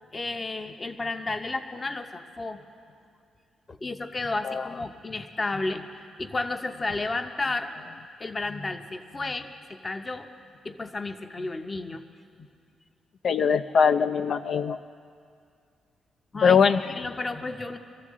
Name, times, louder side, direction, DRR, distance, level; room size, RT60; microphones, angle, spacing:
voice 1, 0.0-2.6 3.7-7.7 8.2-9.5 9.8-10.3 10.6-12.0 16.3-16.6 16.9-17.8, left 3 dB, 30° left, 7 dB, 0.7 m, -32 dB
voice 2, 13.2-14.8 16.4-16.9, left 6 dB, 60° left, 10 dB, 0.3 m, -21 dB
24.5 x 14.5 x 3.7 m, 2.3 s
cardioid pair, 95°, 0 cm